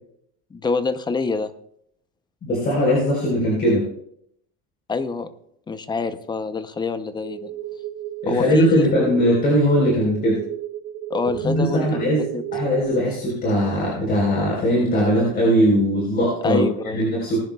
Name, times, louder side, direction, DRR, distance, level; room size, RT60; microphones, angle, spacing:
voice 1, 0.5-1.5 4.9-5.3 5.7-7.5 8.3-9.1 11.1-12.1 12.3-12.4 16.4-17.0, left 4 dB, 15° left, 12 dB, 0.6 m, -25 dB
voice 2, 2.4-3.9 8.2-10.4 11.4-12.3 12.5-16.7 16.9-17.4, equal, 30° left, -4 dB, 4.1 m, -20 dB
sound 1, 7.2-12.8, right 13 dB, 45° right, 1.1 m, -32 dB
19.5 x 10.5 x 2.3 m, 0.70 s
cardioid pair, 145°, 31 cm